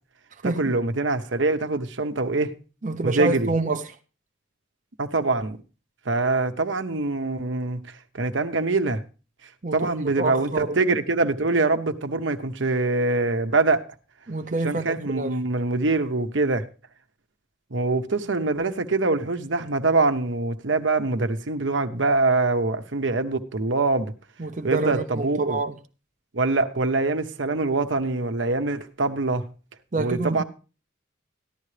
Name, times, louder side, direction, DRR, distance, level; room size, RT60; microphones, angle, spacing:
voice 1, 0.4-2.5 3.0-3.5 5.0-5.6 6.0-9.0 9.7-13.8 14.6-16.7 17.7-24.1 24.6-25.6 26.3-29.5 30.0-30.4, right 3 dB, 70° right, 1.0 m, -24 dB
voice 2, 2.8-3.9 9.6-10.8 14.3-15.3 24.4-25.8 29.9-30.4, right 3 dB, 40° right, 0.7 m, -27 dB
14.5 x 11.0 x 3.3 m
head